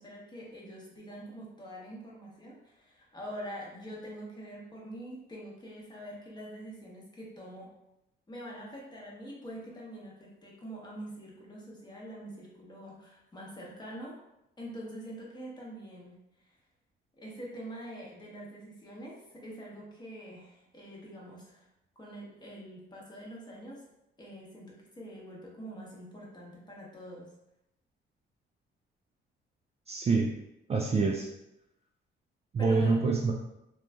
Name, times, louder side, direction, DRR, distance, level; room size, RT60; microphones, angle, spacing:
voice 1, 0.0-7.7 8.3-14.2 14.6-16.6 17.2-21.7 22.0-23.8 24.2-27.3 32.6-33.0, equal, 20° left, -4 dB, 0.9 m, -45 dB
voice 2, 29.9-30.3 30.7-31.3 32.5-33.3, right 4 dB, 30° right, 0 dB, 0.3 m, -26 dB
3.0 x 2.4 x 2.2 m, 0.86 s
cardioid pair, 90°, 20 cm